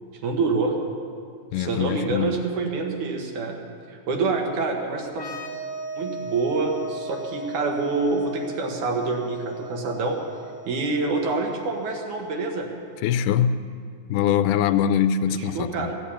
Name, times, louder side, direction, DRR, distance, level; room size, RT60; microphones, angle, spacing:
voice 1, 0.2-0.8 1.6-3.6 3.9-5.3 6.0-10.2 10.7-12.7 15.3-16.0, right 3 dB, 75° right, 1 dB, 2.9 m, -26 dB
voice 2, 1.5-2.4 13.0-13.6 14.1-15.9, left 8 dB, 90° left, 10 dB, 2.1 m, -23 dB
sound 1, 5.1-12.6, right 1 dB, 55° left, 0.4 m, -38 dB
14.5 x 8.3 x 8.4 m, 2.2 s
omnidirectional pair, 3.6 m